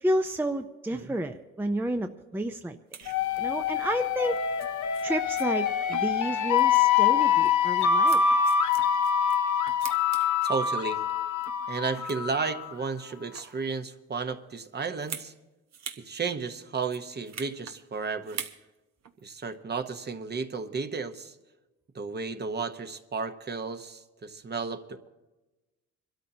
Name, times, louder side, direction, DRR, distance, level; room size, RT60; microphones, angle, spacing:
voice 1, 0.0-2.8 3.4-4.4 5.0-8.2, right 1 dB, 5° right, 6 dB, 0.6 m, -30 dB
sound 1, 2.9-3.2 4.2-4.3 4.6-4.7 4.9-5.0 5.4-5.5 5.9-6.3 6.6-6.8 7.3-9.4 9.7-10.6 11.1-11.6 11.9-12.5 13.1-13.6 15.0-15.3 15.7-16.0 16.3-16.4 16.8-17.8 18.2-18.6 19.0-19.2, right 7 dB, 60° right, 1.1 m, -42 dB
sound 2, 3.1-12.7, left 7 dB, 75° left, 0.9 m, -25 dB
voice 2, 10.4-11.0 11.7-15.3 16.0-18.4 19.2-21.3 21.9-25.1, right 4 dB, 35° right, 8 dB, 1.0 m, -33 dB
26.5 x 13.0 x 2.8 m, 1.1 s
cardioid pair, 90°, 30 cm